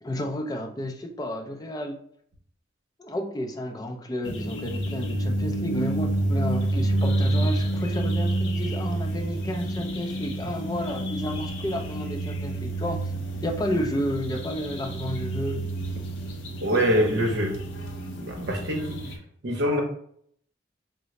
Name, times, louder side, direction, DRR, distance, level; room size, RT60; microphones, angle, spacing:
voice 1, 0.0-2.0 3.0-13.0 13.4-15.7, equal, 20° left, 3 dB, 0.3 m, -31 dB
sound 1, 4.2-19.2, right 1 dB, 65° left, 0.5 m, -29 dB
voice 2, 16.6-17.6 18.2-19.0 19.4-19.8, equal, 60° right, 1 dB, 0.7 m, -24 dB
3.7 x 2.0 x 3.1 m, 0.64 s
head